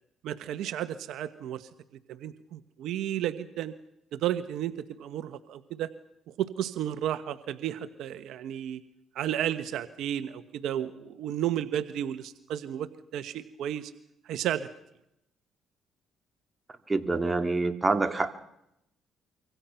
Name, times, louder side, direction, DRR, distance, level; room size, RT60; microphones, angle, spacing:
voice 1, 0.2-1.7 2.1-3.7 4.1-5.9 6.3-8.8 9.1-13.9 14.3-14.7, right 11 dB, 75° right, 11 dB, 1.3 m, -33 dB
voice 2, 16.9-18.3, right 3 dB, 20° right, 7 dB, 2.4 m, -26 dB
26.0 x 25.0 x 5.9 m, 0.81 s
cardioid pair, 85°, 0 cm